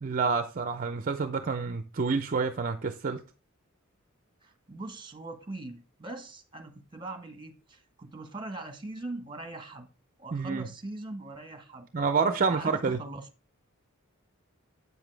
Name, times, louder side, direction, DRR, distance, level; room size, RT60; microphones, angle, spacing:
voice 1, 0.0-3.2 10.3-10.7 11.9-13.0, right 4 dB, 40° right, 0.5 m, -28 dB
voice 2, 4.4-9.9 10.2-11.9 12.5-13.3, right 2 dB, 20° right, 1.3 m, -41 dB
8.1 x 7.1 x 3.3 m
head